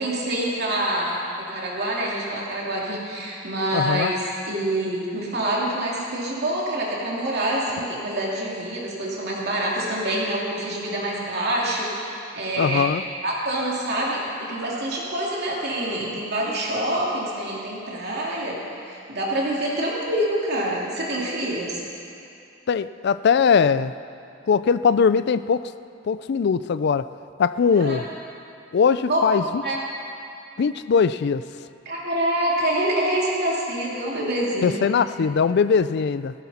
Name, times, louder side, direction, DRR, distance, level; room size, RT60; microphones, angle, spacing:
voice 1, 0.0-4.2 4.5-12.9 13.2-18.6 18.8-21.8 27.8-28.0 29.1-29.2 29.6-29.8 31.8-34.9, right 1 dB, 55° right, -4 dB, 2.7 m, -26 dB
voice 2, 3.7-4.1 12.6-13.1 22.7-23.9 24.5-25.7 26.1-27.1 27.4-28.0 28.7-29.6 30.6-31.4 34.6-36.3, left 6 dB, 60° left, 14 dB, 0.4 m, -20 dB
17.0 x 16.0 x 4.3 m, 2.5 s
head